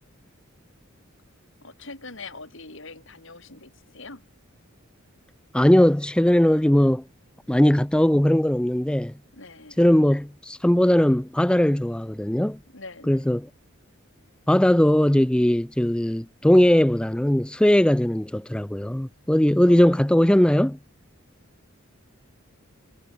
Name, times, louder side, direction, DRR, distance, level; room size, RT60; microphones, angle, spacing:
voice 1, 1.6-4.2 9.3-9.8 12.7-13.4 19.6-20.5, left 3 dB, 60° left, 4.5 m, -43 dB
voice 2, 5.5-7.0 7.5-9.1 9.8-12.6 13.1-13.5 14.5-20.8, left 1 dB, 5° left, 0.3 m, -19 dB
head